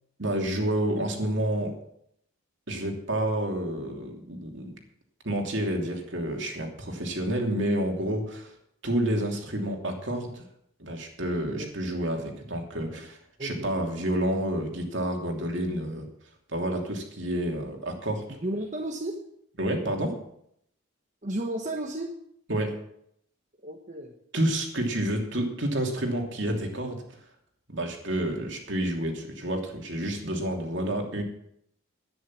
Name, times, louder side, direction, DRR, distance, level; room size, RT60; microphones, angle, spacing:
voice 1, 0.2-1.7 2.7-4.8 5.2-8.5 8.8-10.4 10.8-16.1 16.5-18.2 19.6-20.2 22.5-22.8 24.3-27.0 27.7-31.2, right 1 dB, 60° right, 2 dB, 2.8 m, -29 dB
voice 2, 13.4-13.7 18.4-19.2 21.2-22.2 23.6-24.1, right 1 dB, 35° right, 1 dB, 1.2 m, -33 dB
11.5 x 10.0 x 7.4 m, 0.71 s
head